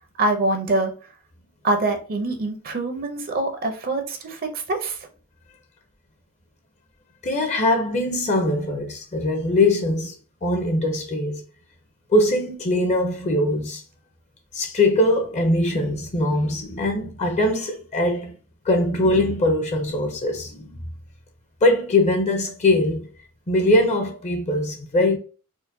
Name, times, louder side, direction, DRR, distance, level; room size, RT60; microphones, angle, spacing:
voice 1, 0.2-0.9 1.6-5.1, right 2 dB, 40° right, 0.5 m, -24 dB
voice 2, 7.2-10.1 10.4-11.4 12.1-13.8 14.5-18.4 18.7-20.8 21.6-23.1 23.5-25.2, left 1 dB, 30° left, 0.5 m, -21 dB
4.4 x 2.1 x 2.6 m
head